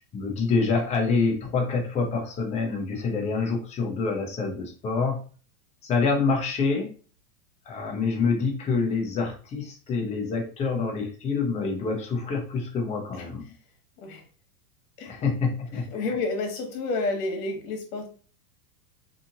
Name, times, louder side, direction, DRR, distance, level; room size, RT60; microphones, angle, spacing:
voice 1, 0.1-5.2 5.8-6.9 7.7-13.4 15.1-16.1, left 4 dB, 15° left, 1 dB, 0.4 m, -26 dB
voice 2, 15.9-18.1, left 3 dB, 60° left, 4 dB, 1.1 m, -30 dB
2.7 x 2.4 x 2.7 m, 0.40 s
supercardioid pair, 125°, 48 cm